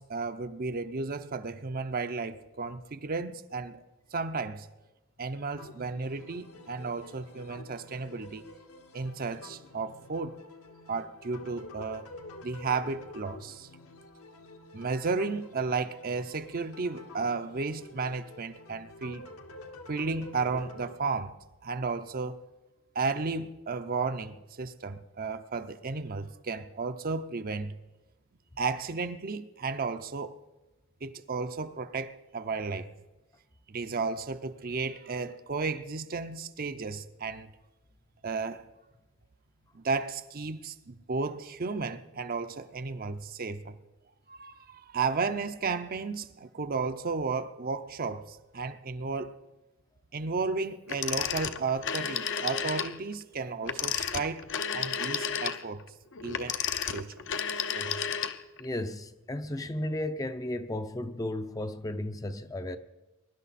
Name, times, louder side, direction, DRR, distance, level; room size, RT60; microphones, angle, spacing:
voice 1, 0.0-3.8 4.1-4.7 5.2-8.4 8.9-10.4 10.9-12.1 12.4-13.7 14.7-19.3 19.9-21.4 21.6-22.5 22.9-27.7 28.6-30.4 31.0-32.9 33.7-37.5 38.2-38.6 39.7-43.8 44.3-49.4 50.1-54.4 54.7-55.8 56.2-57.1 57.7-58.1, right 4 dB, 40° right, 0.6 m, -33 dB
sound 1, 5.6-20.9, left 2 dB, 75° left, 1.4 m, -49 dB
Telephone, 50.9-53.0 53.6-58.6, left 7 dB, 60° left, 0.7 m, -32 dB
voice 2, 58.6-62.8, left 1 dB, 15° left, 0.5 m, -34 dB
22.0 x 11.5 x 4.2 m
head